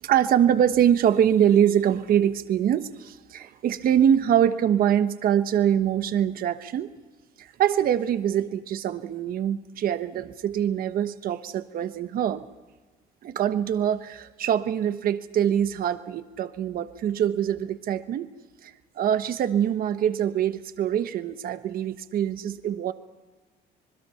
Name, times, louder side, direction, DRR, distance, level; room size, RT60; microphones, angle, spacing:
voice 1, 0.0-6.9 7.4-12.5 13.2-18.3 18.6-22.9, right 9 dB, 60° right, 10 dB, 1.2 m, -24 dB
26.5 x 21.0 x 5.7 m, 1.3 s
cardioid pair, 110°, 17 cm